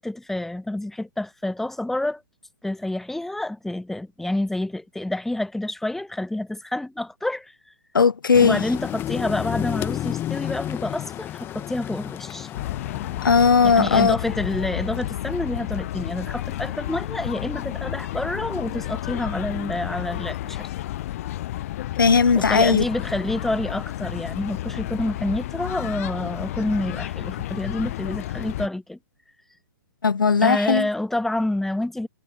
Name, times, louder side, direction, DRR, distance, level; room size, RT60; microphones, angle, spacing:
voice 1, 0.0-2.2 2.6-7.5 8.4-12.5 13.6-20.7 22.3-29.0 30.4-32.1, left 1 dB, 5° left, 1.2 m, -28 dB
voice 2, 7.9-8.6 13.2-14.1 22.0-22.8 30.0-30.8, left 5 dB, 85° left, 0.4 m, -17 dB
sound 1, 8.3-13.5, left 12 dB, 20° left, 1.0 m, -31 dB
sound 2, 12.5-28.7, left 14 dB, 45° left, 0.6 m, -31 dB
figure-of-eight pair, 125°, 11 cm